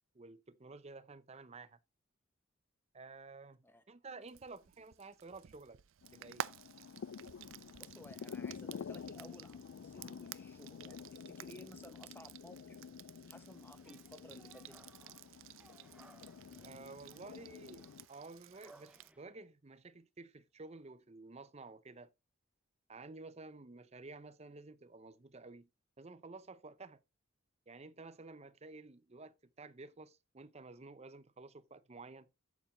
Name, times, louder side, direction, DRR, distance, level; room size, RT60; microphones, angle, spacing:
voice 1, 0.1-1.8 2.9-5.8 6.1-6.4 16.6-22.1 22.9-25.7 26.0-27.0 27.7-32.3, right 3 dB, 30° right, 0.6 m, -52 dB
Frying (food), 4.3-19.1, right 10 dB, 75° right, 0.4 m, -52 dB
sound 1, 6.0-18.1, left 6 dB, 70° left, 0.4 m, -50 dB
voice 2, 7.8-12.8 13.3-14.8, left 1 dB, 10° left, 1.2 m, -56 dB
sound 2, 13.3-19.2, right 1 dB, 5° right, 0.8 m, -64 dB
8.4 x 8.3 x 3.1 m
head